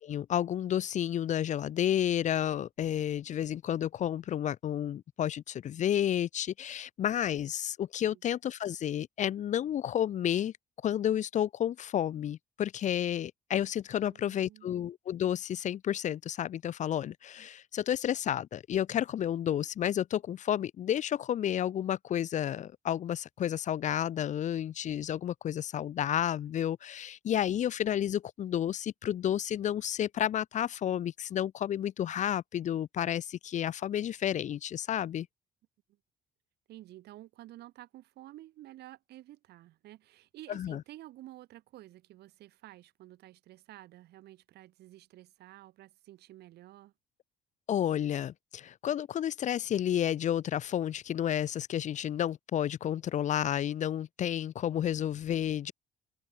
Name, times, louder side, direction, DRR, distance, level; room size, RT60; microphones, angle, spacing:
voice 1, 0.0-10.5 10.8-35.3 40.5-40.8 47.7-55.7, left 10 dB, 45° left, 0.6 m, -31 dB
voice 2, 14.0-14.8 36.7-46.9, right 15 dB, 75° right, 7.0 m, -51 dB
open air
cardioid pair, 110°, 17 cm